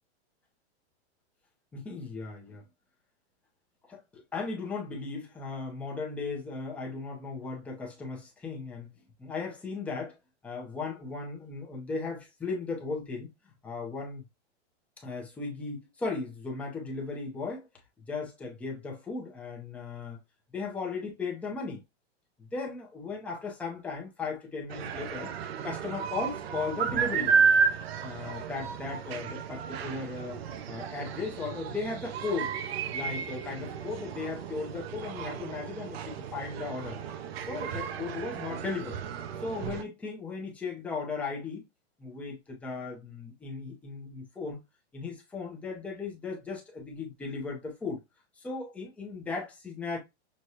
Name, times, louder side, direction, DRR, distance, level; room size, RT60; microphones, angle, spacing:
voice 1, 1.7-2.6 3.9-8.9 9.2-10.2 10.4-13.3 13.6-14.2 15.0-17.7 18.1-20.2 20.5-21.8 22.4-25.3 25.6-27.4 28.0-30.4 30.7-32.5 32.9-37.0 37.5-39.0 39.4-41.6 42.0-44.6 44.9-48.0 48.4-50.0, left 4 dB, 5° left, 0.6 m, -36 dB
sound 1, 24.7-39.8, right 6 dB, 60° right, 0.6 m, -32 dB
6.3 x 2.2 x 2.8 m
supercardioid pair, 170°, 34 cm